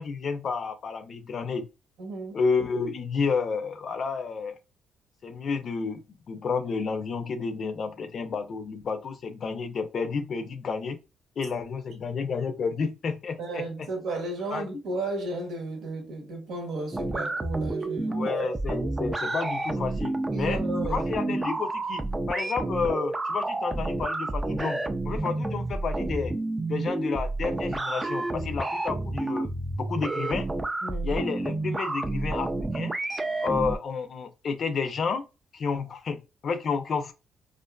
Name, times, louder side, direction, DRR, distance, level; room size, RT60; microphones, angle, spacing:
voice 1, 0.0-1.7 2.3-4.6 5.2-6.0 6.3-11.0 11.4-13.6 14.5-14.8 18.1-20.6 20.9-26.3 26.7-29.5 29.8-30.5 31.0-32.9 33.4-35.3 35.5-37.1, left 5 dB, 55° left, 0.5 m, -30 dB
voice 2, 2.0-2.4 13.4-18.3 20.3-21.6 30.8-31.2, right 2 dB, 80° right, 1.0 m, -34 dB
sound 1, 16.9-33.8, right 2 dB, 20° right, 0.4 m, -30 dB
2.5 x 2.4 x 2.2 m
cardioid pair, 90°, 0 cm